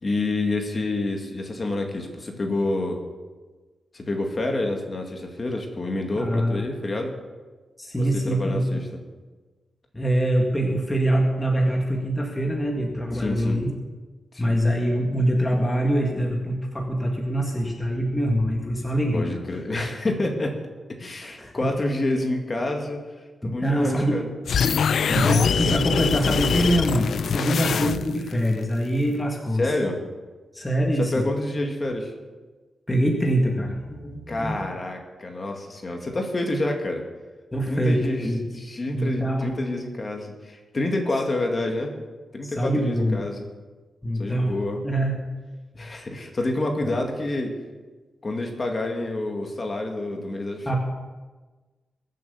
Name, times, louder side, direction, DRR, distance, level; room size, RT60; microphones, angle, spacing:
voice 1, 0.0-3.0 3.9-7.1 8.0-8.8 13.1-13.6 14.3-14.6 19.1-20.6 21.0-23.0 23.4-24.3 27.4-27.6 29.6-30.0 31.0-32.1 34.3-37.0 37.7-38.3 38.5-41.9 42.3-43.4 44.2-44.8 45.7-47.5 48.2-50.8, left 2 dB, 30° left, 2 dB, 2.1 m, -28 dB
voice 2, 6.2-6.6 7.8-8.7 9.9-13.7 14.4-19.4 21.2-21.7 23.4-24.2 25.1-29.7 30.5-31.2 32.9-34.6 37.5-38.5 38.9-39.5 42.4-43.2 44.0-44.6 44.8-45.2 45.8-46.0 50.7-50.8, right 1 dB, 10° left, 0 dB, 1.9 m, -24 dB
sound 1, 24.5-28.3, left 7 dB, 65° left, 0.4 m, -23 dB
23.0 x 7.6 x 7.1 m, 1.3 s
wide cardioid pair, 160°, 0 cm